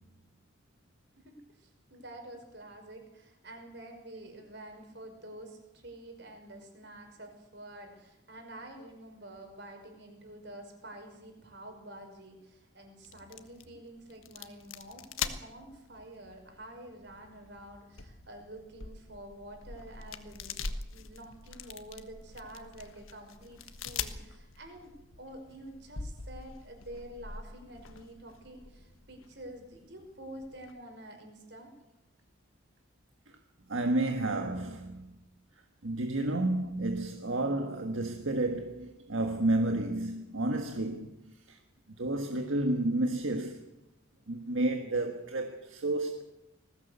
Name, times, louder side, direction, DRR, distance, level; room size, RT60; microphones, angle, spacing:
voice 1, 1.2-20.6 20.9-31.7, right 1 dB, 55° right, 5.4 m, -48 dB
sound 1, 13.0-30.7, left 5 dB, 85° left, 1.5 m, -44 dB
voice 2, 33.7-35.1 35.8-41.6 42.0-43.7 44.3-46.2, right 2 dB, 75° right, 1.6 m, -31 dB
20.5 x 16.0 x 8.2 m
head